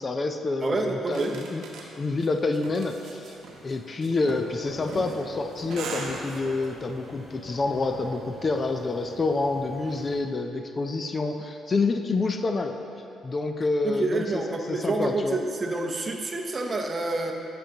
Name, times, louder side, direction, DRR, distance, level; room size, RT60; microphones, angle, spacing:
voice 1, 0.0-3.4 3.6-12.8 13.2-15.4, left 3 dB, 35° left, 6 dB, 0.4 m, -28 dB
voice 2, 0.6-1.4 13.8-17.3, right 3 dB, 35° right, 3 dB, 0.7 m, -28 dB
sound 1, 1.1-6.7, right 4 dB, 80° right, 0.8 m, -40 dB
sound 2, 4.6-10.2, equal, 10° left, 0.8 m, -44 dB
8.6 x 7.5 x 2.9 m, 2.7 s
cardioid pair, 90°, 0 cm